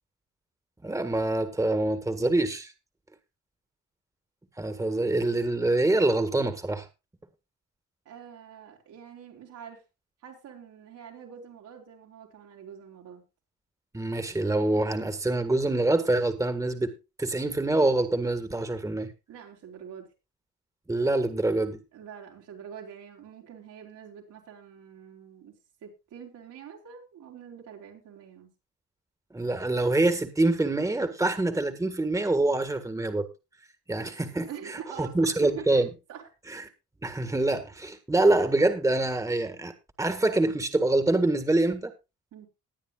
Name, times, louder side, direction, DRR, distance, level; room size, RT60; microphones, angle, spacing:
voice 1, 0.8-2.7 4.6-6.9 13.9-19.1 20.9-21.8 29.3-33.3 33.9-35.9 36.5-36.6 37.0-39.7 40.0-41.9, right 2 dB, 10° right, 1.6 m, -25 dB
voice 2, 8.0-9.8 10.2-13.2 19.3-20.1 21.9-25.6 25.8-28.5 34.5-35.8 36.1-36.3 42.3-42.5, right 8 dB, 85° right, 4.6 m, -45 dB
19.5 x 9.0 x 2.3 m
cardioid pair, 90°, 30 cm